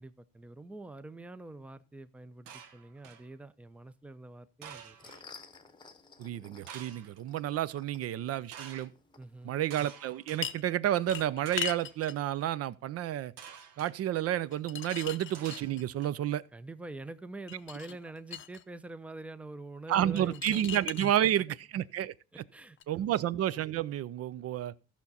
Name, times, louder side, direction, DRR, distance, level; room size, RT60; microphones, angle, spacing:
voice 1, 0.0-5.0 9.2-9.5 16.5-20.6 21.2-21.6 22.3-23.1, right 2 dB, 5° right, 0.5 m, -46 dB
sound 1, 2.5-3.3 4.6-5.2 6.7-7.2 8.5-8.9 9.7-10.4 11.4-11.9 13.4-13.9 15.3-16.1, right 8 dB, 75° right, 1.3 m, -48 dB
sound 2, 4.7-9.8, left 4 dB, 15° left, 0.9 m, -55 dB
voice 2, 6.2-8.9 9.4-13.3 13.8-16.4 19.9-22.1 22.9-24.7, right 11 dB, 50° right, 0.5 m, -30 dB
sound 3, 10.4-10.7 11.1-12.2 14.5-16.1 17.5-18.6 20.2-21.1 22.8-22.9, left 9 dB, 35° left, 0.7 m, -39 dB
14.5 x 5.9 x 4.0 m
cardioid pair, 110°, 33 cm